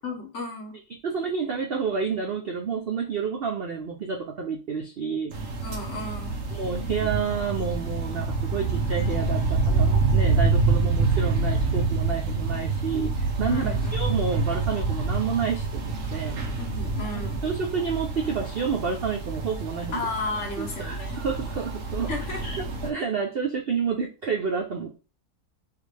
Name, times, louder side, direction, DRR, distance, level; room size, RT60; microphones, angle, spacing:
voice 1, 0.0-0.8 5.6-6.4 13.5-13.9 16.6-17.4 19.9-21.2 22.1-22.4, left 3 dB, 50° left, 2 dB, 1.1 m, -33 dB
voice 2, 1.0-5.3 6.5-16.7 17.0-20.1 20.6-22.1 22.4-24.9, right 6 dB, 85° right, 2 dB, 0.5 m, -29 dB
sound 1, 5.3-22.9, right 3 dB, 55° right, 1.1 m, -27 dB
4.0 x 3.1 x 3.2 m, 0.33 s
omnidirectional pair, 1.8 m